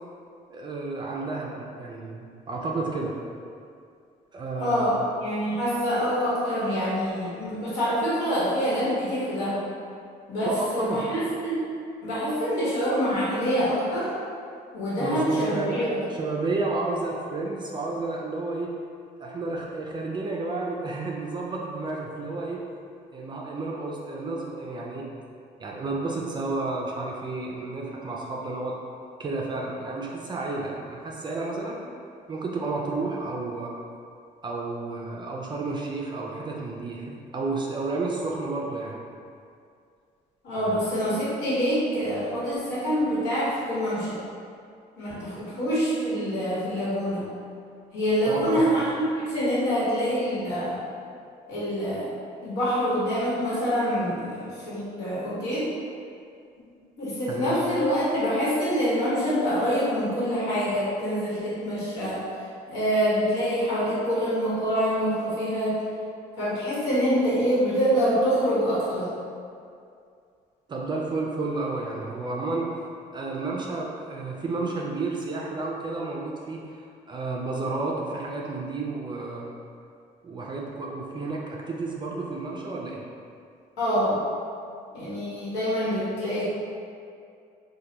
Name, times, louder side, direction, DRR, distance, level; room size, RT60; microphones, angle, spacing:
voice 1, 0.5-3.1 4.3-4.9 10.4-11.1 15.0-15.8 16.2-18.7 19.2-22.6 23.1-25.1 25.6-28.7 29.2-31.8 32.3-33.7 34.4-39.0 40.7-40.8 45.4-45.5 48.3-48.7 57.3-57.5 70.7-72.7 73.1-79.5 80.2-83.0, right 3 dB, 25° right, -2 dB, 0.3 m, -31 dB
voice 2, 4.6-4.9 5.2-9.6 10.3-11.7 12.0-14.1 14.7-15.9 40.4-44.2 45.0-47.2 47.9-50.8 51.5-52.1 52.4-55.7 57.0-62.2 62.7-65.8 66.4-69.1 83.8-84.2 84.9-86.5, equal, 90° left, -9 dB, 1.1 m, -25 dB
3.1 x 2.2 x 2.8 m, 2.4 s
cardioid pair, 110°, 17 cm